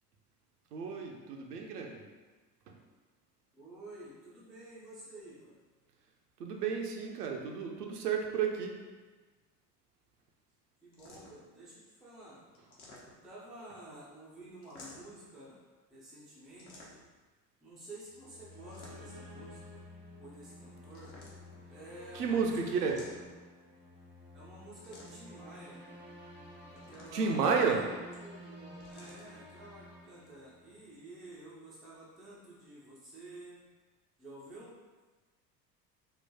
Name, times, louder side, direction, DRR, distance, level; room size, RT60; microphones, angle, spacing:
voice 1, 0.7-2.0 6.4-8.7 22.1-23.0 27.1-27.8, right 5 dB, 75° right, 2 dB, 0.6 m, -31 dB
voice 2, 3.5-5.5 10.8-12.4 13.2-15.6 15.9-16.9 17.6-19.8 20.2-21.1 21.7-23.1 24.3-25.8 26.7-33.6 34.2-34.7, right 1 dB, ahead, -7 dB, 0.3 m, -51 dB
sound 1, 10.9-11.5 12.5-13.4 14.6-15.2 16.6-17.2 18.5-19.3 20.9-21.7 22.8-23.5 24.8-25.4 26.7-27.4 28.8-29.3, left 2 dB, 60° left, 0.9 m, -54 dB
sound 2, 18.1-30.9, left 1 dB, 90° right, 1.1 m, -51 dB
3.7 x 2.1 x 2.7 m, 1.3 s
figure-of-eight pair, 70°, 49 cm